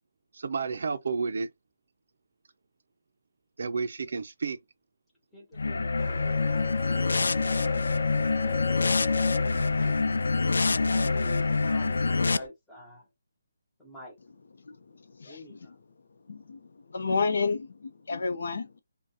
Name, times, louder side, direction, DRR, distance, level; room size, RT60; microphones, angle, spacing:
voice 1, 0.3-1.5 3.6-4.6, right 4 dB, 50° right, 0.5 m, -31 dB
voice 2, 5.3-10.1 10.7-13.1 13.8-14.2 15.2-15.8, left 1 dB, 5° left, 0.9 m, -47 dB
sound 1, 5.6-12.4, left 3 dB, 75° left, 0.3 m, -26 dB
sound 2, 6.0-12.5, left 7 dB, 40° left, 2.4 m, -39 dB
voice 3, 14.6-15.6 16.3-18.8, left 4 dB, 55° left, 0.8 m, -31 dB
5.2 x 2.3 x 2.8 m
hypercardioid pair, 180°, 0 cm